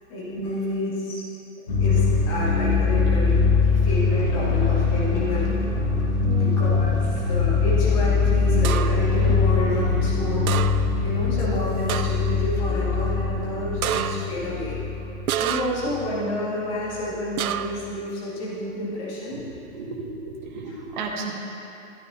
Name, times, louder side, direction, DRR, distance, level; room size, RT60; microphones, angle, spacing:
voice 1, 0.1-1.2 1.8-5.6 6.2-10.6 11.0-14.8 15.4-19.4 20.7-20.8, left 1 dB, 25° left, -7 dB, 1.9 m, -29 dB
sound 1, 1.7-16.2 17.6-17.7, left 4 dB, 55° left, 1.9 m, -22 dB
voice 2, 6.2-6.5 15.5-15.7 19.3-19.4 19.7-21.3, right 4 dB, 35° right, -1 dB, 1.2 m, -34 dB
sound 2, 8.6-9.1 10.5-11.0 11.4-11.5 11.9-12.3 13.8-14.4 15.3-16.0 17.4-17.9, right 10 dB, 85° right, 0.6 m, -28 dB
14.5 x 9.4 x 2.8 m, 2.8 s
hypercardioid pair, 170°, 41 cm